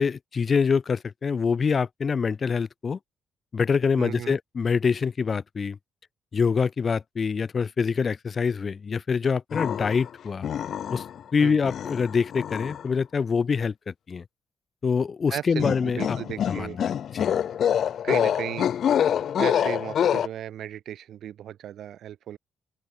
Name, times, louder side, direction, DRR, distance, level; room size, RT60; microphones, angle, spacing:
voice 1, 0.0-3.0 3.5-5.8 6.3-10.5 10.9-11.0 11.3-14.2 14.8-16.2 16.5-17.4, left 5 dB, 40° left, 1.2 m, -25 dB
voice 2, 4.0-4.4 11.4-11.6 15.3-16.8 18.0-18.7 19.4-22.4, right 11 dB, 70° right, 4.4 m, -35 dB
sound 1, 9.5-10.1 10.4-11.2 11.6-12.8 15.6-20.3, left 9 dB, 60° left, 0.6 m, -26 dB
open air
cardioid pair, 90°, 0 cm